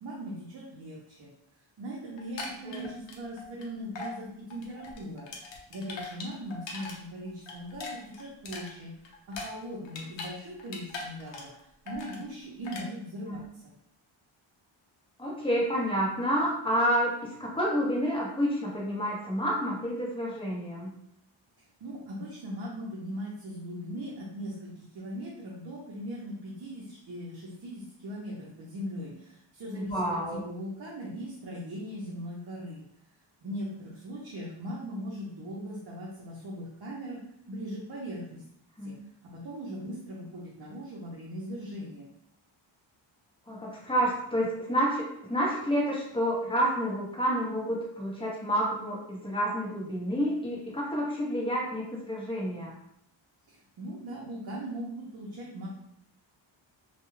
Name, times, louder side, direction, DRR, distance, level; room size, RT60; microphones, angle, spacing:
voice 1, 0.0-1.3 1.8-5.3 5.7-8.9 9.3-11.5 11.8-13.7 21.8-32.8 33.4-37.2 37.5-38.4 38.8-38.9 39.2-42.1 53.5-55.7, equal, 50° right, -5 dB, 0.7 m, -39 dB
sound 1, 2.2-3.6 4.0-4.2 4.5-7.0 7.3-10.3 10.6-11.6 11.9-12.2 12.6-12.9, left 3 dB, 65° left, 0.7 m, -40 dB
voice 2, 15.2-20.9 29.9-30.4 38.8-39.0 43.5-52.7, equal, 10° left, -4 dB, 0.8 m, -29 dB
2.3 x 2.2 x 3.1 m, 0.73 s
cardioid pair, 100°, 47 cm